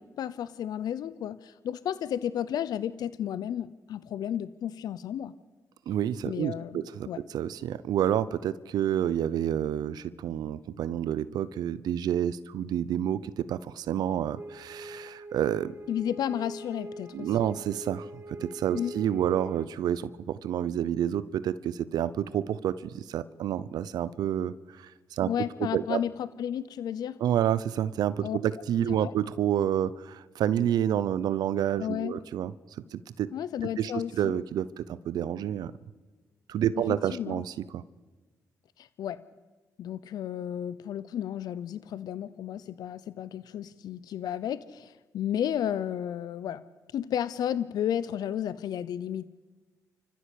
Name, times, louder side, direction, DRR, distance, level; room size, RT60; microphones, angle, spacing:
voice 1, 0.0-5.3 6.3-7.2 15.9-17.3 18.7-18.9 25.2-27.2 28.2-28.4 28.9-29.1 31.8-32.2 33.3-34.3 37.1-37.4 38.8-39.2 39.8-46.6 46.9-49.3, left 10 dB, 80° left, 16 dB, 0.8 m, -33 dB
voice 2, 5.9-15.7 17.1-25.3 25.7-26.0 27.2-32.5 32.9-33.3 33.8-35.7 36.5-37.8, right 10 dB, 85° right, 16 dB, 0.7 m, -29 dB
sound 1, 14.4-19.7, right 1 dB, 30° right, 2.0 m, -43 dB
29.0 x 14.5 x 8.5 m, 1.3 s
cardioid pair, 60°, 7 cm